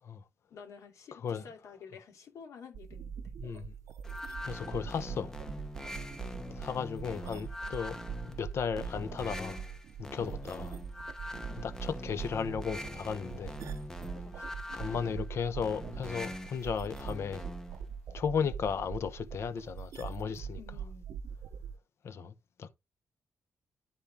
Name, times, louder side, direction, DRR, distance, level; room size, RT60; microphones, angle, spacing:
voice 1, 0.5-3.2 6.2-6.4 10.3-10.5 11.5-11.7 14.2-14.6 20.6-21.1, left 6 dB, 75° left, 2.6 m, -51 dB
sound 1, 2.7-21.7, right 7 dB, 80° right, 0.7 m, -43 dB
voice 2, 3.4-3.7 4.5-5.3 6.6-8.0 8.3-9.6 10.0-10.8 11.6-13.6 14.7-17.5 18.1-20.6 22.0-22.3 22.6-22.7, left 6 dB, 55° left, 0.8 m, -35 dB
sound 2, 4.0-17.8, left 1 dB, 10° left, 0.8 m, -43 dB
11.5 x 4.3 x 3.4 m
wide cardioid pair, 170°, 5 cm